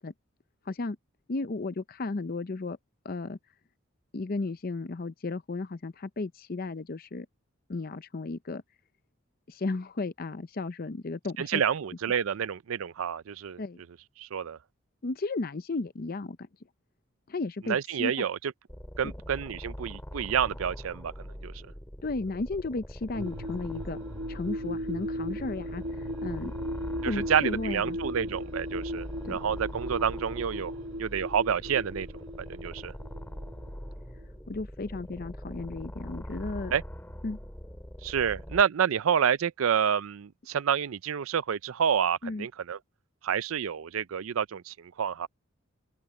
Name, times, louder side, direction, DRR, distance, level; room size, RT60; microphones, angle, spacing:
voice 1, 0.7-1.0 1.3-2.8 3.0-3.4 4.1-7.3 7.7-8.6 9.5-11.6 13.6-13.8 15.0-16.5 17.3-18.3 22.0-24.0 24.3-26.5 27.1-28.0 29.2-29.4 34.5-36.7 37.2-37.4 42.2-42.5, left 3 dB, 45° left, 0.6 m, -34 dB
voice 2, 11.4-13.6 14.2-14.6 17.7-18.5 19.0-21.5 27.0-30.7 31.0-32.1 32.4-32.9 36.7-36.8 38.0-42.8 43.2-45.3, right 7 dB, 85° right, 0.5 m, -28 dB
sound 1, 18.7-38.6, equal, 10° left, 4.4 m, -42 dB
sound 2, 23.1-33.9 34.2-34.3, equal, 70° right, 1.7 m, -37 dB
open air
head